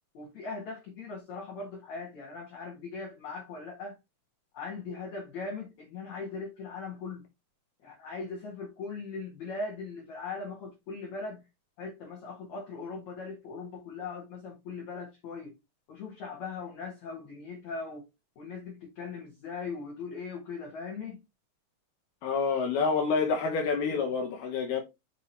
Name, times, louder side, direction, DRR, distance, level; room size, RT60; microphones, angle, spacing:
voice 1, 0.1-4.0 4.5-7.2 7.8-11.4 11.8-15.6 15.9-18.0 18.4-21.2, left 4 dB, 55° left, 2.2 m, -39 dB
voice 2, 22.2-24.8, left 5 dB, 70° left, 2.5 m, -28 dB
6.2 x 5.9 x 2.9 m
omnidirectional pair, 5.5 m